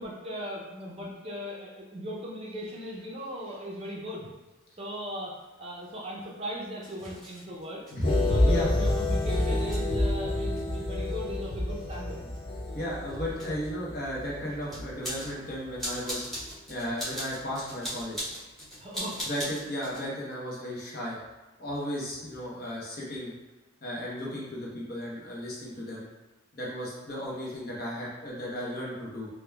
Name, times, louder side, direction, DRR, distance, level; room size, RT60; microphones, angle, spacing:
voice 1, 0.0-4.3 4.7-7.8 8.3-12.3 18.8-19.3 22.6-22.7, equal, 30° right, -4 dB, 0.5 m, -38 dB
sound 1, 3.0-3.1 3.8-3.9 4.9-20.1, equal, ahead, 0.9 m, -42 dB
sound 2, 8.0-15.9 16.3-16.5, left 1 dB, 25° left, 0.4 m, -28 dB
voice 2, 12.7-16.3 16.7-18.3 19.2-21.2 21.6-23.3 23.8-26.0 26.5-29.3, equal, 45° left, -5 dB, 0.9 m, -34 dB
4.7 x 2.2 x 2.3 m, 1.1 s
head